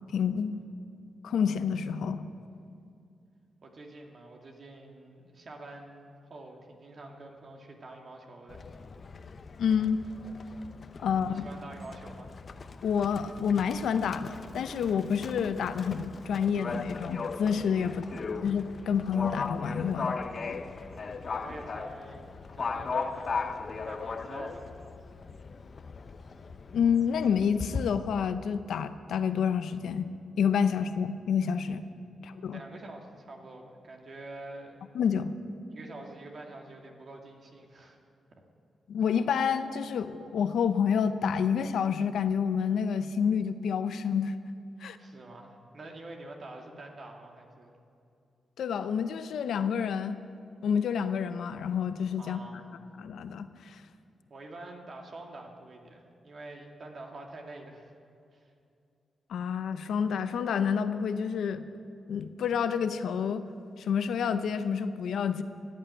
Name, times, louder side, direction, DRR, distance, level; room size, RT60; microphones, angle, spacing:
voice 1, 0.1-0.6 1.2-2.2 9.6-10.0 11.0-11.5 12.8-18.0 18.4-20.2 26.7-30.1 30.4-31.8 32.2-32.6 34.9-35.3 38.9-44.4 44.8-45.0 48.6-50.2 50.6-52.4 53.0-53.8 59.3-61.6 62.1-63.4 63.8-65.4, left 7 dB, 80° left, 11 dB, 0.7 m, -28 dB
voice 2, 3.6-8.6 11.1-12.3 17.8-18.3 20.8-22.3 22.5-24.7 32.1-34.8 35.7-38.0 44.8-47.7 52.2-52.8 54.3-57.9 58.3-58.5, right 2 dB, 55° right, 1 dB, 2.2 m, -47 dB
Livestock farm animals working animals, 8.5-27.8, left 4 dB, 50° left, 0.8 m, -38 dB
16.0 x 8.7 x 9.1 m, 2.5 s
cardioid pair, 70°, 0 cm